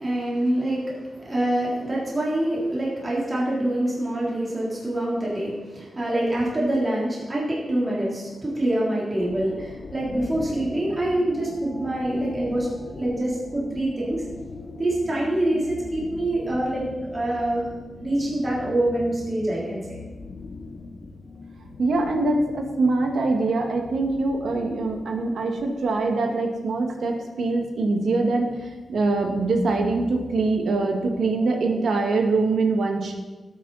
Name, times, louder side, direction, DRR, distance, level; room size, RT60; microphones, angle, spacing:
voice 1, 0.0-14.2 14.8-16.8 17.1-17.7 18.0-20.0, right 1 dB, 25° right, -6 dB, 3.5 m, -25 dB
sound 1, 9.2-26.0, left 3 dB, 50° left, 1.1 m, -40 dB
voice 2, 21.8-28.5 28.9-33.1, right 3 dB, 75° right, 2 dB, 2.0 m, -23 dB
18.0 x 9.3 x 4.2 m, 1.2 s
wide cardioid pair, 175°, 0 cm